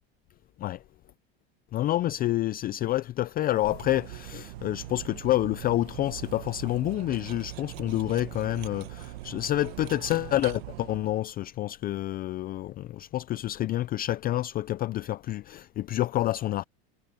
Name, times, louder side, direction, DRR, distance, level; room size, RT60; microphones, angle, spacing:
voice 1, 1.7-16.6, left 14 dB, 30° left, 0.4 m, -28 dB
Cutlery silverware, 3.5-11.3, right 17 dB, 80° right, 1.8 m, -42 dB
supercardioid pair, 125°, 31 cm